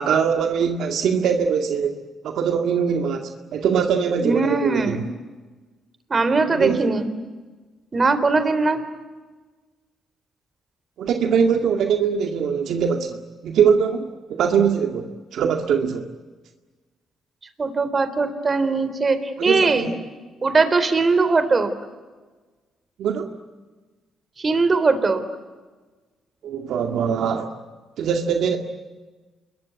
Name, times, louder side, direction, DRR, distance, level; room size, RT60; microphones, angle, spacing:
voice 1, 0.0-2.0 2.2-5.0 6.5-6.9 11.0-16.1 19.4-19.9 23.0-23.4 26.4-27.5 28.0-28.6, right 7 dB, 75° right, 4 dB, 2.0 m, -22 dB
voice 2, 4.2-5.0 6.1-7.1 7.9-8.8 17.6-19.9 20.4-21.7 24.4-25.2, right 3 dB, 35° right, 10 dB, 3.7 m, -20 dB
28.0 x 22.5 x 9.5 m, 1.3 s
cardioid pair, 90°, 0 cm